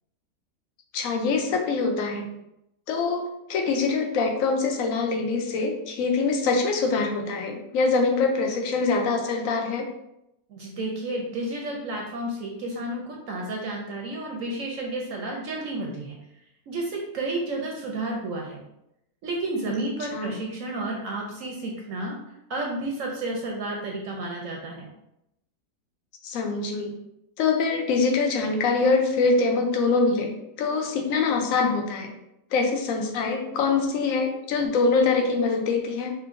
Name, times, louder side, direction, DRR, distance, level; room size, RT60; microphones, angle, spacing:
voice 1, 0.9-2.3 2.9-3.2 3.5-9.9 19.7-20.3 26.2-26.9 27.4-32.1 32.5-36.1, left 4 dB, 65° left, 3 dB, 1.0 m, -24 dB
voice 2, 10.5-16.2 16.7-18.6 19.2-22.2 22.5-24.9, right 2 dB, 65° right, -1 dB, 0.9 m, -31 dB
5.6 x 2.5 x 2.5 m, 0.84 s
omnidirectional pair, 1.7 m